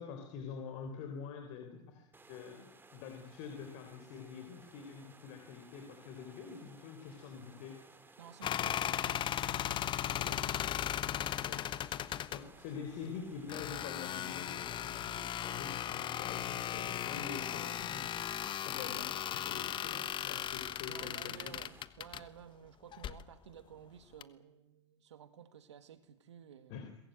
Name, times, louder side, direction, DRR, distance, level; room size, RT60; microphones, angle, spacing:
voice 1, 0.0-7.8 10.2-10.4 11.4-11.6 12.3-21.5 26.7-26.9, left 6 dB, 55° left, 4.1 m, -46 dB
sound 1, 2.1-21.8, right 3 dB, 15° right, 2.9 m, -59 dB
voice 2, 8.2-10.4 11.5-11.6 12.4-12.5 20.9-26.9, right 9 dB, 75° right, 1.9 m, -54 dB
sound 2, 8.4-12.4 13.5-22.2 22.9-23.2 24.2-24.3, left 11 dB, 35° left, 1.2 m, -37 dB
22.5 x 21.0 x 9.2 m
hypercardioid pair, 90°, 15 cm